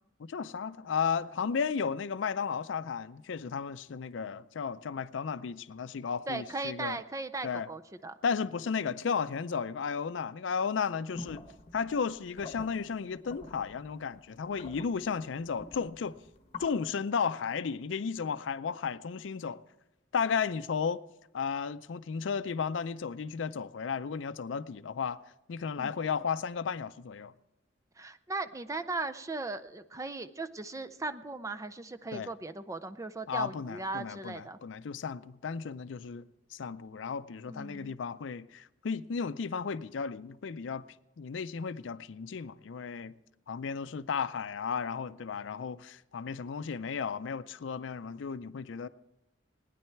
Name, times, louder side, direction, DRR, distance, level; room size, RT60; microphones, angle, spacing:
voice 1, 0.2-7.0 7.4-7.7 8.2-11.4 11.7-16.2 16.6-19.6 20.1-21.0 21.3-25.2 25.5-27.3 32.1-32.3 33.3-40.8 41.2-43.1 43.5-48.9, left 6 dB, 80° left, 0.4 m, -34 dB
voice 2, 6.3-8.1 25.8-25.9 28.0-34.6 37.5-38.0, right 3 dB, 15° right, 0.5 m, -38 dB
sound 1, 11.1-16.7, left 3 dB, 35° left, 1.3 m, -47 dB
18.5 x 10.0 x 4.5 m
head